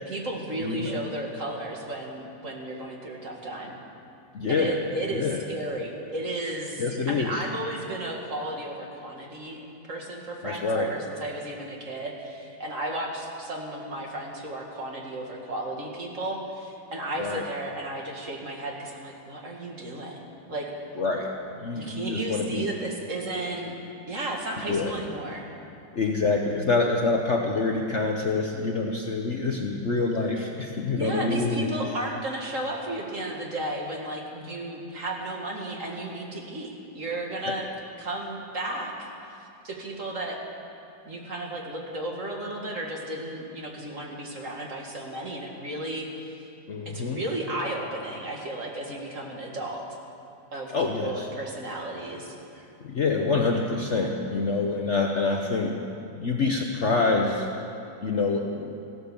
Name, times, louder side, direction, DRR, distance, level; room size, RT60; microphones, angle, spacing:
voice 1, 0.0-3.7 4.5-9.6 9.9-20.2 20.5-20.7 21.8-23.7 24.1-25.4 30.9-37.7 38.0-39.1 39.4-40.4 41.1-46.5 46.9-49.8 50.5-52.3, right 1 dB, 45° right, 0 dB, 2.1 m, -34 dB
voice 2, 0.6-1.0 4.3-4.8 5.1-5.4 6.8-7.4 10.4-10.9 17.2-17.4 21.0-22.7 24.7-24.9 26.0-31.7 46.7-47.2 50.7-51.3 52.8-55.8 56.2-57.5 58.0-58.7, left 3 dB, 50° left, 1 dB, 1.0 m, -26 dB
15.5 x 12.5 x 7.1 m, 2.7 s
omnidirectional pair, 2.0 m